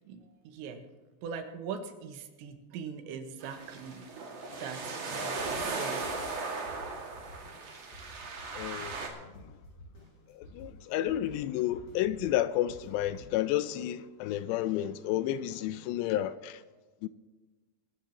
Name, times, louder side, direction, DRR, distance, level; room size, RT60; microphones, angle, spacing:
voice 1, 0.1-0.9 1.2-4.0 4.5-6.2, right 6 dB, 85° right, 3.4 m, -41 dB
sound 1, 3.4-9.1, right 3 dB, 45° right, 2.6 m, -37 dB
sound 2, 5.4-13.2, equal, 55° left, 7.8 m, -52 dB
voice 2, 8.5-9.0 9.4-9.5 10.3-16.6 17.0-17.1, left 13 dB, 85° left, 2.6 m, -31 dB
23.5 x 13.5 x 2.9 m
omnidirectional pair, 5.1 m